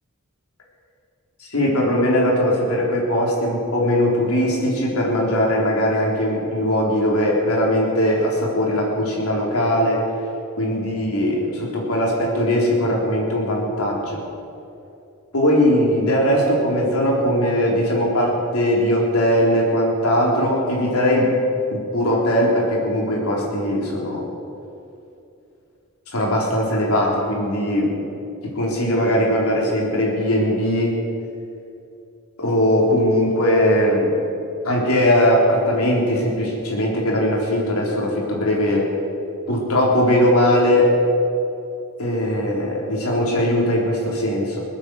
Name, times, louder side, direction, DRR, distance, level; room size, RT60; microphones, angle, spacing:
voice 1, 1.5-10.0 10.6-14.2 15.3-21.3 21.7-24.2 26.1-28.0 28.4-30.9 32.4-34.1 34.6-38.9 39.5-40.9 42.0-44.6, equal, 90° left, -3 dB, 3.9 m, -20 dB
21.0 x 8.8 x 7.8 m, 2.7 s
head